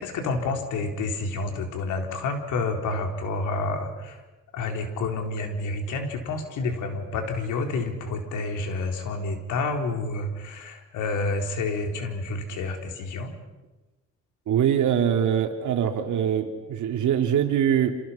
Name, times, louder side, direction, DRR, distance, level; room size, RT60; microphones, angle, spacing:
voice 1, 0.0-4.2 4.5-13.3, left 3 dB, 85° left, 4 dB, 4.1 m, -29 dB
voice 2, 14.5-17.9, right 9 dB, 75° right, 5 dB, 3.0 m, -23 dB
29.0 x 26.5 x 5.8 m, 1.1 s
cardioid pair, 90°, 30 cm